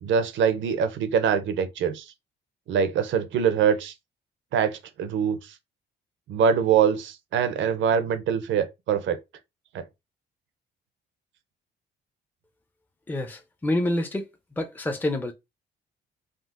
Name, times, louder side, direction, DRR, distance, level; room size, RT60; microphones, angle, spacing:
voice 1, 0.0-2.1 2.7-3.9 4.5-5.5 6.3-9.2 9.7-9.8, right 7 dB, 75° right, 0.6 m, -24 dB
voice 2, 13.1-14.3 14.6-15.3, left 1 dB, 10° left, 0.5 m, -27 dB
3.7 x 2.1 x 2.4 m
cardioid pair, 90°, 20 cm